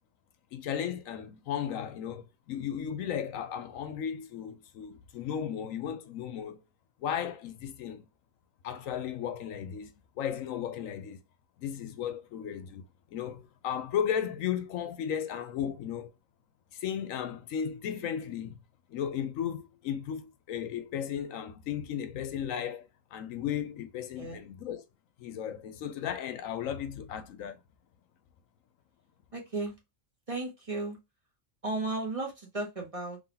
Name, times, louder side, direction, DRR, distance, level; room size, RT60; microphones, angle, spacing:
voice 1, 0.5-6.6 7.0-8.1 8.6-9.9 10.2-11.2 11.6-12.8 13.1-16.1 16.7-18.5 18.9-24.8 25.2-27.6, left 9 dB, 80° left, 1.0 m, -35 dB
voice 2, 29.3-29.7 30.3-31.0 31.6-33.2, right 2 dB, 25° right, 1.3 m, -34 dB
3.8 x 3.2 x 2.7 m
omnidirectional pair, 1.4 m